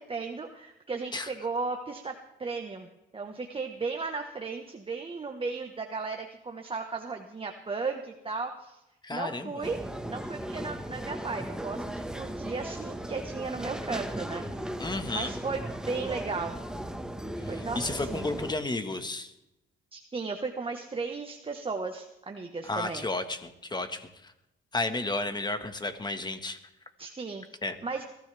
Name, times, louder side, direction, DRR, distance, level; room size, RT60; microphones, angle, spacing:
voice 1, 0.0-2.1 2.4-2.9 3.1-8.8 9.1-9.8 10.1-14.4 15.1-16.5 17.5-18.3 19.9-23.0 27.0-27.4 27.8-28.0, right 4 dB, 25° right, 3 dB, 1.4 m, -35 dB
voice 2, 9.0-9.6 14.8-15.3 17.4-19.3 22.6-24.3 24.7-26.6 27.6-27.8, left 2 dB, 20° left, 8 dB, 1.7 m, -32 dB
sound 1, 9.6-18.5, right 1 dB, 5° right, 1.5 m, -37 dB
22.0 x 13.5 x 3.5 m, 0.90 s
cardioid pair, 90°, 20 cm